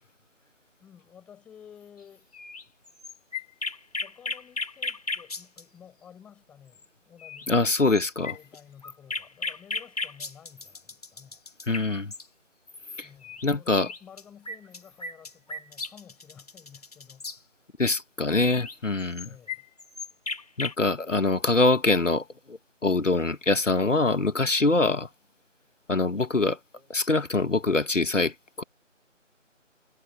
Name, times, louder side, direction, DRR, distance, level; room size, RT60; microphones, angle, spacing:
voice 1, 0.8-2.3 4.0-7.6 8.3-11.4 13.0-17.5 19.2-19.7, left 8 dB, 5° left, 7.0 m, -52 dB
sound 1, 2.3-5.6 6.8-6.9 7.2-7.5 7.7-12.2 13.2-13.5 13.7-17.4 18.5-20.7, left 3 dB, 30° left, 3.1 m, -35 dB
voice 2, 7.5-8.3 11.7-12.1 13.0-13.1 13.4-13.9 17.8-19.3 20.6-25.1 25.9-26.6 26.9-28.6, left 3 dB, 75° left, 1.8 m, -24 dB
figure-of-eight pair, 170°, 38 cm